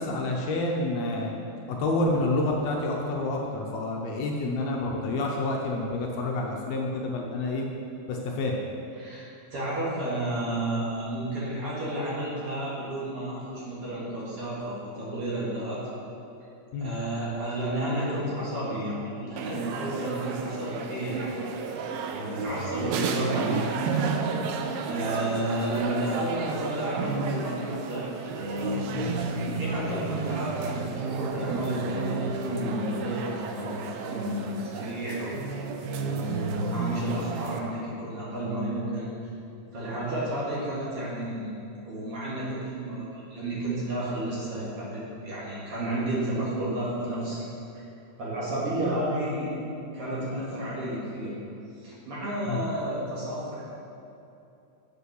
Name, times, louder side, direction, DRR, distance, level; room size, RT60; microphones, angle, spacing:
voice 1, 0.0-1.3 1.8-7.7 8.1-8.6 16.7-16.9 22.5-22.8 28.9-29.1 52.5-52.6, left 2 dB, 75° left, 0 dB, 1.8 m, -28 dB
voice 2, 9.5-15.8 16.8-21.3 22.1-23.6 24.9-28.8 29.5-35.4 36.0-39.1 39.7-41.5 41.8-47.4 48.2-49.5 49.9-51.3 51.7-53.6, right 1 dB, 55° right, -7 dB, 2.6 m, -31 dB
sound 1, 19.4-37.6, right 4 dB, 80° right, 1.8 m, -32 dB
7.6 x 5.5 x 6.4 m, 2.7 s
omnidirectional pair, 3.3 m